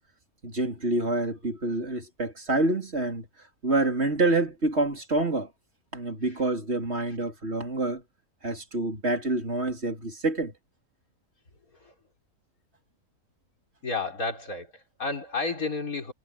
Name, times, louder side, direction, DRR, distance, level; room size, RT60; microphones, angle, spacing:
voice 1, 0.4-3.3 3.6-5.5 5.9-8.0 8.4-10.5, right 2 dB, 45° right, 4.0 m, -27 dB
voice 2, 13.8-16.1, left 3 dB, 70° left, 4.4 m, -32 dB
omnidirectional pair, 1.6 m